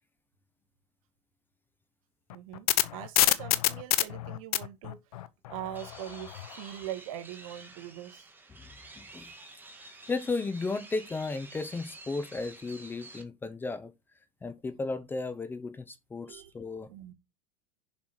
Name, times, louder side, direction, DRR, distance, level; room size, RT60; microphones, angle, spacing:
sound 1, 2.3-6.5, left 15 dB, 85° left, 0.9 m, -27 dB
voice 1, 2.3-5.0 5.5-8.3 16.3-16.5 16.9-17.1, right 12 dB, 70° right, 1.8 m, -42 dB
sound 2, 5.7-13.2, right 3 dB, 10° right, 1.6 m, -50 dB
voice 2, 9.0-9.3 10.1-13.9 14.4-16.9, left 3 dB, 10° left, 0.7 m, -34 dB
7.2 x 5.9 x 4.9 m
supercardioid pair, 150°, 18 cm